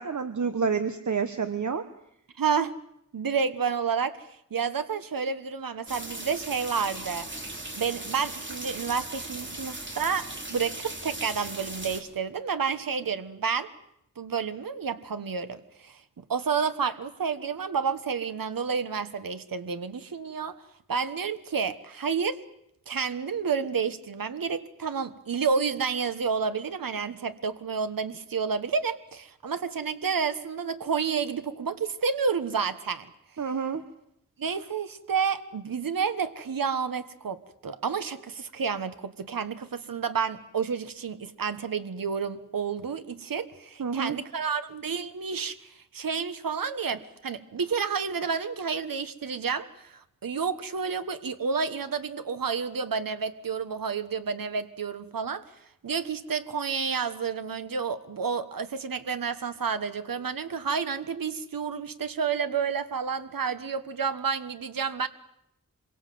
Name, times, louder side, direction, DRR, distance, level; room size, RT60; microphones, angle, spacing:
voice 1, 0.0-1.8 33.4-33.8 43.8-44.2, right 6 dB, 55° right, 9 dB, 1.3 m, -28 dB
voice 2, 2.4-2.7 3.1-7.3 7.7-13.7 14.2-16.0 16.3-20.6 20.9-22.4 22.9-33.1 34.4-55.4 55.8-65.1, right 6 dB, 75° right, 11 dB, 1.4 m, -30 dB
sound 1, 5.9-12.0, right 2 dB, 35° right, 4.1 m, -38 dB
26.5 x 23.5 x 7.7 m, 0.77 s
wide cardioid pair, 95°, 34 cm